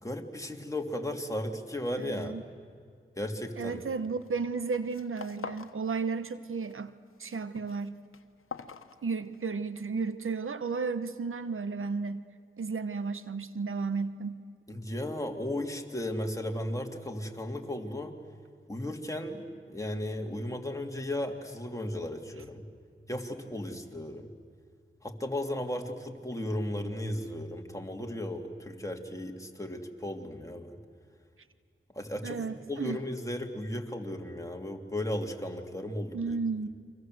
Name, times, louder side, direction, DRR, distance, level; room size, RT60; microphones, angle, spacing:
voice 1, 0.0-2.4 3.2-3.8 14.7-18.2 18.7-22.6 23.1-24.3 25.0-30.8 31.9-36.4, left 1 dB, 15° left, 3 dB, 2.9 m, -35 dB
voice 2, 2.0-2.4 3.6-6.9 7.2-8.0 9.0-12.2 12.6-14.4 32.2-33.0 36.1-36.7, right 4 dB, 80° right, 12 dB, 1.0 m, -33 dB
sound 1, 4.0-4.4 4.6-5.8 6.1-6.7 7.1-9.5, left 5 dB, 85° left, 1.2 m, -45 dB
30.0 x 24.5 x 7.8 m, 2.1 s
cardioid pair, 45°, 21 cm